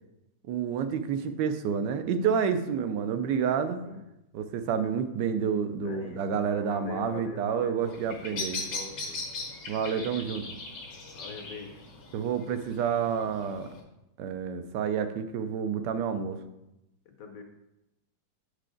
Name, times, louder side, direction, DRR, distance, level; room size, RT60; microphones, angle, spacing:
voice 1, 0.5-3.8 4.3-8.6 9.7-10.5 12.1-13.7 14.2-16.4, right 7 dB, 85° right, 9 dB, 1.2 m, -29 dB
voice 2, 5.8-9.2 11.1-11.8 17.1-17.4, left 5 dB, 65° left, 5 dB, 1.0 m, -43 dB
Bird vocalization bird call bird song, 7.8-13.8, left 3 dB, 80° left, 1.8 m, -39 dB
6.6 x 5.0 x 3.8 m, 0.90 s
omnidirectional pair, 1.8 m